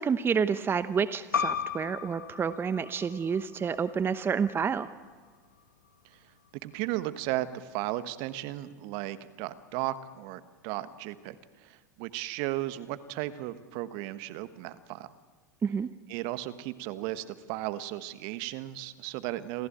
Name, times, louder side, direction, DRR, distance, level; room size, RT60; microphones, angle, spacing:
voice 1, 0.0-5.0 15.6-15.9, right 6 dB, 25° right, 13 dB, 0.9 m, -29 dB
sound 1, 1.3-6.5, left 7 dB, 90° left, 1.3 m, -37 dB
voice 2, 6.6-11.4 11.6-15.2 16.1-19.7, right 15 dB, 55° right, 13 dB, 1.4 m, -35 dB
27.5 x 15.0 x 8.7 m, 1.5 s
hypercardioid pair, 85°, 10 cm